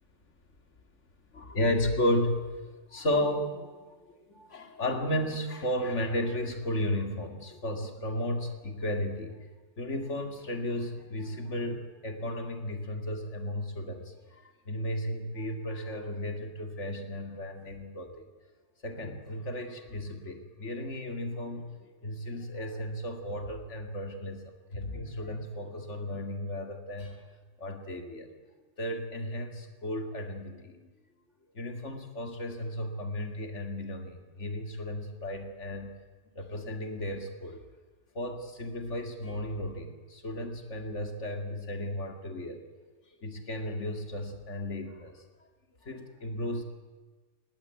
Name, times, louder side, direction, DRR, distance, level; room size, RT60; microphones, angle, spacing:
voice 1, 1.3-2.6 2.9-3.8 4.3-9.4 9.8-14.1 14.7-18.1 18.8-27.2 27.6-28.3 28.8-30.8 31.5-36.0 36.4-37.6 38.1-42.6 43.2-45.1 45.8-46.6, left 1 dB, 70° left, 5 dB, 2.6 m, -34 dB
19.5 x 18.5 x 8.3 m, 1.3 s
omnidirectional pair, 1.3 m